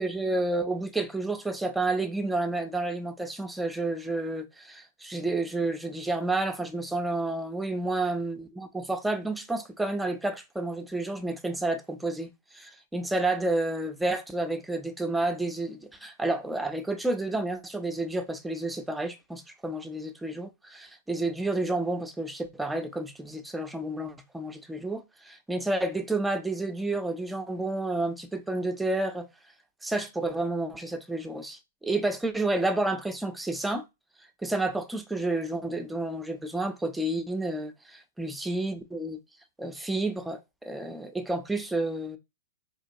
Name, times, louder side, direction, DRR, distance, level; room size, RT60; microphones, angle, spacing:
voice 1, 0.0-29.3 29.8-33.8 34.4-39.2 39.6-42.2, right 2 dB, 5° right, 0.5 m, -30 dB
4.4 x 2.8 x 2.6 m
hypercardioid pair, 120°, 0 cm